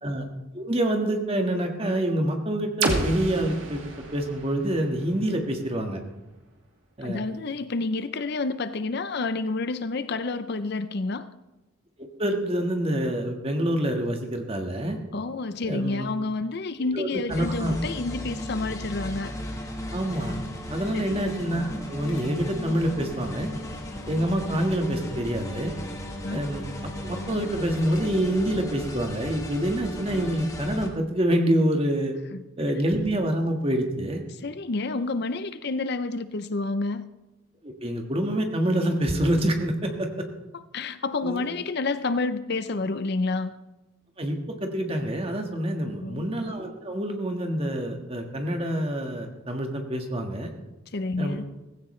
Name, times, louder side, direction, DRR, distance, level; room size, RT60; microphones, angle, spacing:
voice 1, 0.5-3.8 4.1-6.0 7.0-7.2 12.0-15.0 15.7-16.1 16.9-17.7 19.9-20.4 20.7-23.5 24.1-25.7 26.3-26.6 27.0-32.1 32.6-34.2 37.6-40.3 41.2-41.4 44.2-50.5 51.2-51.4, right 1 dB, 30° right, 3 dB, 1.6 m, -26 dB
sound 1, 2.8-6.7, right 2 dB, 70° right, 2.3 m, -32 dB
voice 2, 7.0-11.3 15.1-19.3 20.9-21.1 26.2-26.4 32.3-32.4 34.3-37.1 40.5-43.5 45.8-46.3 50.9-51.5, left 3 dB, 50° left, 12 dB, 0.6 m, -29 dB
sound 2, 17.3-30.9, equal, 15° left, 1.3 m, -36 dB
sound 3, 20.1-20.4 20.8-21.4 21.7-21.8 22.1-28.4, left 2 dB, 70° left, 2.9 m, -44 dB
16.5 x 15.5 x 3.2 m, 1.0 s
head